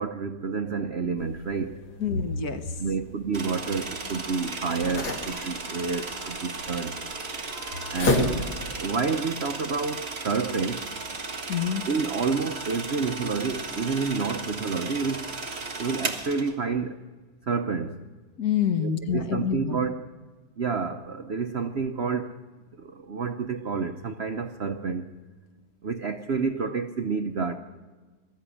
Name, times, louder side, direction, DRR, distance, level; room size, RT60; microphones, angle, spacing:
voice 1, 0.0-1.8 2.8-7.0 7.9-10.8 11.9-15.3 15.8-17.0 17.4-18.0 18.8-20.0 20.6-22.4 22.8-25.1 25.8-27.6, right 5 dB, 70° right, 8 dB, 0.6 m, -29 dB
sound 1, 1.2-8.9, left 2 dB, 80° left, 3.2 m, -33 dB
voice 2, 2.0-2.8 11.5-11.8 18.4-19.9, left 7 dB, 50° left, 8 dB, 1.4 m, -27 dB
sound 2, 3.3-16.5, right 3 dB, 30° right, 1.9 m, -35 dB
21.0 x 14.0 x 9.9 m, 1.4 s
omnidirectional pair, 2.3 m